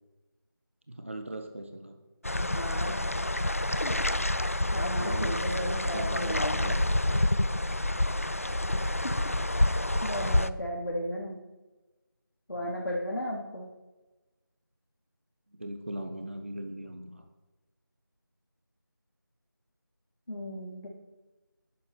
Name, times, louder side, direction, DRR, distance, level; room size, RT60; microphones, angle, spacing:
voice 1, 1.0-1.9 5.0-7.2 12.6-12.9 15.6-17.2, right 1 dB, 35° right, 5 dB, 1.4 m, -40 dB
sound 1, 2.2-10.5, left 1 dB, 40° left, 0.5 m, -28 dB
voice 2, 2.4-3.0 3.8-3.9 4.2-6.7 9.2-9.3 9.6-11.4 12.5-13.7 20.3-20.9, equal, 75° left, -2 dB, 3.6 m, -35 dB
12.0 x 10.5 x 6.0 m, 1.1 s
figure-of-eight pair, 175°, 12 cm